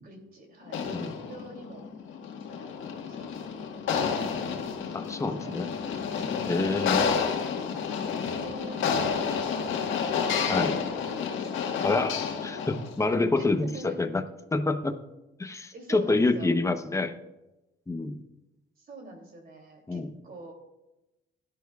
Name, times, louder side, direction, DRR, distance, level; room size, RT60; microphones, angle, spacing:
voice 1, 0.0-1.9 2.5-2.7 3.1-4.7 5.2-5.8 6.1-6.3 6.7-7.1 8.0-8.9 9.2-10.1 10.6-11.6 13.4-14.0 15.7-16.5 18.8-20.5, right 2 dB, 50° right, 2 dB, 2.8 m, -46 dB
sound 1, 0.7-13.0, left 6 dB, 80° left, 1.4 m, -30 dB
voice 2, 4.9-5.7 6.5-7.1 10.5-10.7 11.8-14.2 14.5-14.9 15.4-17.1 17.9-18.2 19.9-20.1, left 3 dB, 15° left, 8 dB, 0.9 m, -27 dB
16.5 x 10.5 x 2.4 m, 0.96 s
cardioid pair, 90°, 20 cm